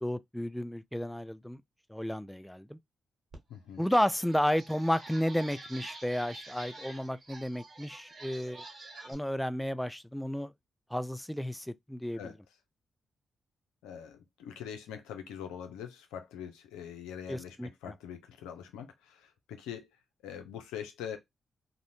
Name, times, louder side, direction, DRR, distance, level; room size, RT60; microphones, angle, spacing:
voice 1, 0.0-1.6 1.9-2.8 3.8-8.6 9.1-10.5 10.9-12.3 17.3-17.7, equal, 5° left, 0.3 m, -32 dB
sound 1, 3.3-3.4 3.8-9.1, right 2 dB, 45° right, 1.0 m, -48 dB
voice 2, 3.5-3.8 12.1-12.3 13.8-19.9 20.2-21.2, left 8 dB, 90° left, 0.5 m, -43 dB
2.5 x 2.1 x 2.7 m
supercardioid pair, 45°, 0 cm